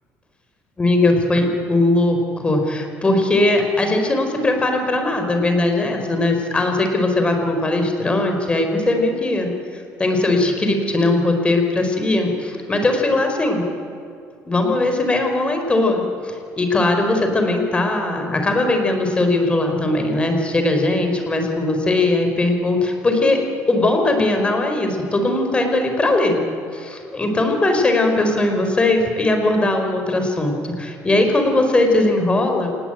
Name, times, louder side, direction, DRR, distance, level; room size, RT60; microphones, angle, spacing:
voice 1, 0.8-13.7 14.5-23.4 23.7-26.4 26.7-32.7, left 2 dB, 20° left, 4 dB, 4.5 m, -19 dB
27.5 x 19.5 x 9.1 m, 2.5 s
cardioid pair, 140°, 6 cm